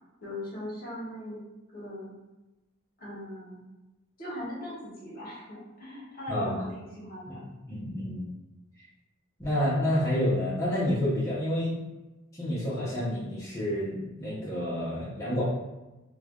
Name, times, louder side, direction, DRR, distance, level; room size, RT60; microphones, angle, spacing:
voice 1, 0.2-1.4 1.7-2.1 3.0-3.6 4.2-7.5, left 1 dB, 45° left, -6 dB, 0.9 m, -40 dB
voice 2, 7.7-8.2 9.4-11.8 12.4-15.4, left 1 dB, 15° left, -11 dB, 0.6 m, -29 dB
3.2 x 2.1 x 2.3 m, 1.1 s
head